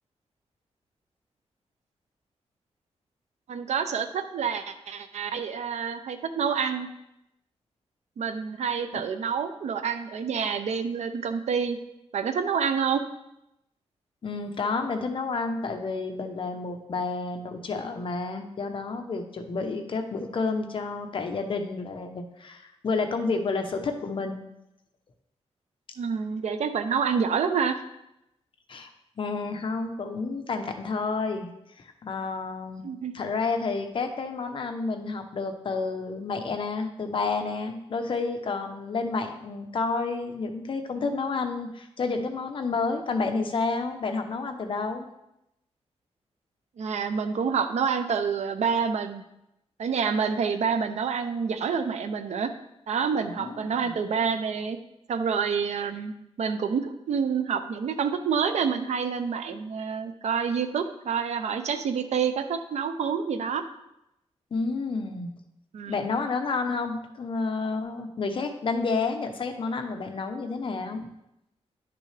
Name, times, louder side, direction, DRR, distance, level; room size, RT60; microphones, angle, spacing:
voice 1, 3.5-6.9 8.2-11.8 12.1-13.0 26.0-27.8 32.8-33.1 46.8-49.2 49.8-52.5 52.9-54.8 55.1-63.6 65.7-66.1, right 6 dB, 85° right, 9 dB, 0.7 m, -28 dB
voice 2, 14.2-24.5 28.7-28.9 29.2-31.5 31.8-32.9 33.1-45.1 53.2-54.0 64.5-65.3 65.9-71.1, left 4 dB, 50° left, 5 dB, 0.9 m, -30 dB
10.5 x 6.0 x 3.4 m, 0.86 s
wide cardioid pair, 170°, 11 cm